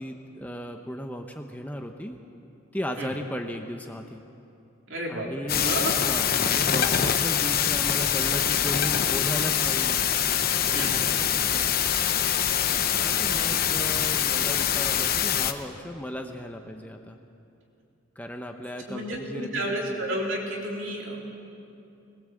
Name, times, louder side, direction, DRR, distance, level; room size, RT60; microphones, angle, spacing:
voice 1, 0.0-2.1 2.7-4.2 5.1-10.0 10.6-11.2 11.4-11.9 13.0-17.2 18.2-20.0, equal, 10° left, 4 dB, 0.8 m, -36 dB
voice 2, 4.9-5.9 10.7-11.0 18.9-21.2, right 1 dB, 60° right, -1 dB, 3.7 m, -31 dB
sound 1, 5.5-15.5, left 9 dB, 45° left, 0.9 m, -24 dB
20.5 x 20.5 x 7.8 m, 2.7 s
head